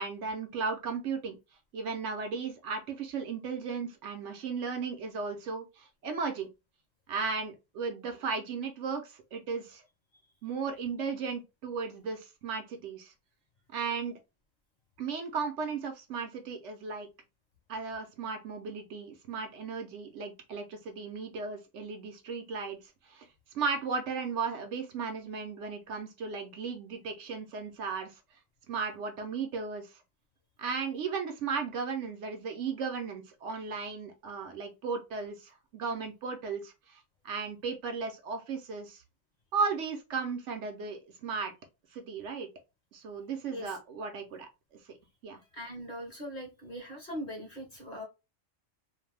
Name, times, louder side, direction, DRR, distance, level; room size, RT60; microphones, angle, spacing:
voice 1, 0.0-1.4 1.7-6.5 7.1-9.8 10.4-13.1 13.7-14.2 15.0-17.1 17.7-22.8 23.0-23.3 23.5-28.2 28.7-30.0 30.6-39.0 39.5-41.5 41.9-42.5 42.9-45.0 45.2-45.4, right 5 dB, 70° right, 5 dB, 0.9 m, -35 dB
voice 2, 45.5-48.0, equal, 40° left, 1 dB, 0.9 m, -41 dB
2.5 x 2.2 x 3.2 m, 0.26 s
omnidirectional pair, 1.4 m